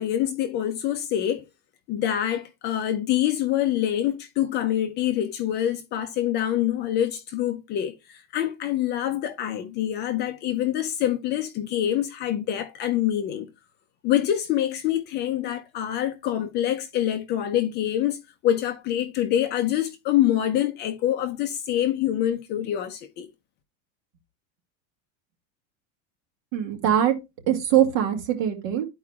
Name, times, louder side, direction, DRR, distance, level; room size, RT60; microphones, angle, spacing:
voice 1, 0.0-1.4 1.9-13.5 14.0-23.3, left 11 dB, 25° left, 0.5 m, -25 dB
voice 2, 26.5-27.1 27.5-28.9, right 10 dB, 60° right, 2.2 m, -22 dB
12.5 x 4.7 x 2.3 m
supercardioid pair, 165°, 40 cm